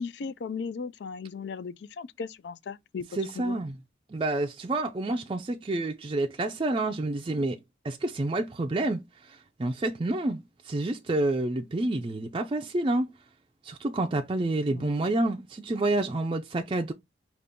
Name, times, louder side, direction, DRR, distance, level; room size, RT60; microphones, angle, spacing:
voice 1, 0.0-3.0 3.4-3.6 14.7-15.1, left 5 dB, 65° left, 0.4 m, -37 dB
voice 2, 3.1-3.8 4.1-7.6 7.8-13.1 13.6-16.9, right 2 dB, 30° right, 0.4 m, -29 dB
5.2 x 2.4 x 3.5 m
head